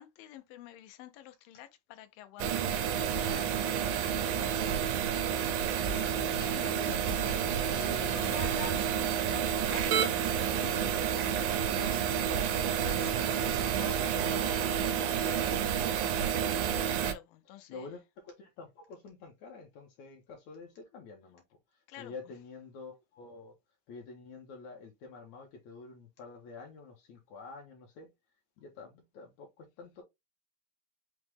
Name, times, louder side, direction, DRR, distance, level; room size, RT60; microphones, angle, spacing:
voice 1, 0.0-4.8 5.9-7.2 7.5-16.0 17.0-17.9 21.9-22.1, left 13 dB, 90° left, 2.4 m, -49 dB
sound 1, 2.4-17.1, right 8 dB, 85° right, 2.2 m, -30 dB
voice 2, 4.3-4.9 6.3-8.4 17.4-23.5 23.9-28.1 28.6-30.0, left 4 dB, 75° left, 1.8 m, -48 dB
6.0 x 2.1 x 3.3 m
omnidirectional pair, 3.9 m